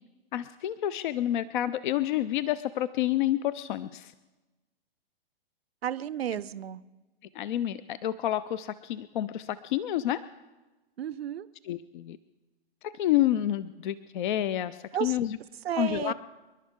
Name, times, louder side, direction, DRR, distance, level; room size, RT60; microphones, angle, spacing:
voice 1, 0.3-4.1 7.3-10.2 11.6-12.2 12.8-15.4 15.8-16.1, left 12 dB, 55° left, 15 dB, 0.6 m, -29 dB
voice 2, 5.8-6.8 11.0-11.5 14.9-15.2 15.6-16.1, right 10 dB, 85° right, 16 dB, 0.7 m, -32 dB
27.5 x 11.5 x 3.7 m, 1.1 s
hypercardioid pair, 140°, 30 cm